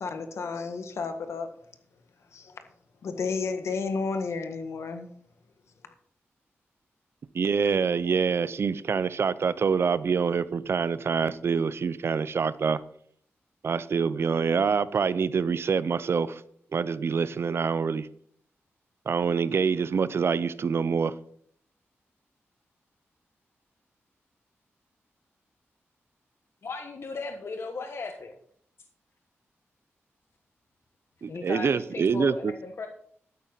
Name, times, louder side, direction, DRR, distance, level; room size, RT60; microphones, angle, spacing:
voice 1, 0.0-1.5 2.3-2.6 3.0-5.1, left 4 dB, 75° left, 7 dB, 1.6 m, -32 dB
voice 2, 7.3-12.8 13.6-16.4 16.7-18.1 19.1-21.1 31.2-32.5, right 5 dB, 60° right, 17 dB, 0.6 m, -26 dB
voice 3, 26.6-28.4 31.3-32.9, left 4 dB, 60° left, 4 dB, 1.2 m, -36 dB
12.5 x 9.4 x 4.0 m, 0.63 s
cardioid pair, 85°, 5 cm